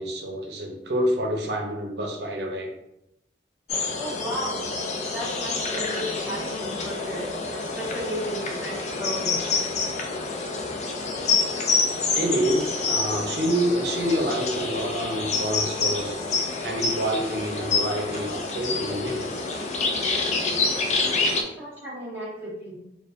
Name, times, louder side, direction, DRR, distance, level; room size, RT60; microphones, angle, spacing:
voice 1, 0.0-2.7 12.1-16.2 16.6-19.3, equal, 75° right, 2 dB, 0.7 m, -27 dB
sound 1, 3.7-21.4, left 4 dB, 40° left, 0.4 m, -27 dB
voice 2, 4.0-4.7 5.1-9.6 21.6-22.8, equal, 15° right, -8 dB, 1.3 m, -34 dB
4.3 x 2.4 x 2.5 m, 0.85 s
head